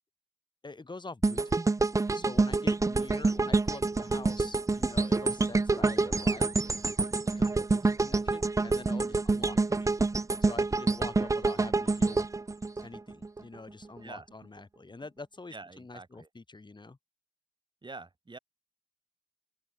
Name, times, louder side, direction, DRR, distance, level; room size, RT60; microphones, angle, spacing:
voice 1, 0.6-1.6 2.1-6.5 7.3-9.9 10.4-12.3 12.8-17.0, left 3 dB, 55° left, 5.0 m, -45 dB
sound 1, 1.2-13.4 13.8-14.0, right 3 dB, 35° right, 0.4 m, -27 dB
voice 2, 15.5-16.3 17.8-18.4, right 3 dB, 55° right, 4.4 m, -46 dB
open air
cardioid pair, 45°, 9 cm